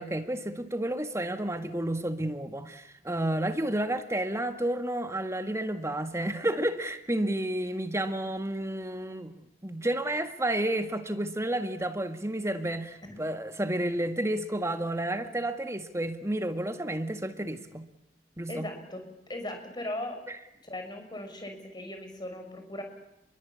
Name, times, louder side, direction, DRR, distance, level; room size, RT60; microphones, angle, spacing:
voice 1, 0.0-17.9 18.4-18.7 20.3-20.4, right 1 dB, 15° right, 1.8 m, -31 dB
voice 2, 18.5-20.2 20.6-22.8, left 1 dB, 25° left, 6.3 m, -38 dB
29.0 x 23.0 x 8.5 m
head